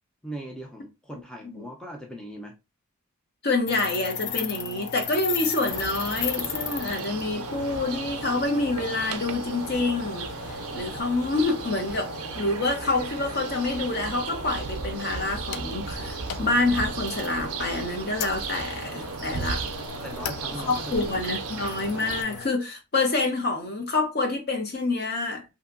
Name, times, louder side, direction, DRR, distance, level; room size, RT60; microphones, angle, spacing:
voice 1, 0.2-2.5 20.0-21.2, right 1 dB, 5° left, 0.4 m, -39 dB
voice 2, 3.4-19.6 20.5-25.4, left 2 dB, 45° left, 0.8 m, -27 dB
sound 1, 3.7-22.5, left 8 dB, 75° left, 0.4 m, -37 dB
sound 2, 5.7-22.2, right 5 dB, 80° right, 0.5 m, -35 dB
2.8 x 2.6 x 2.4 m
head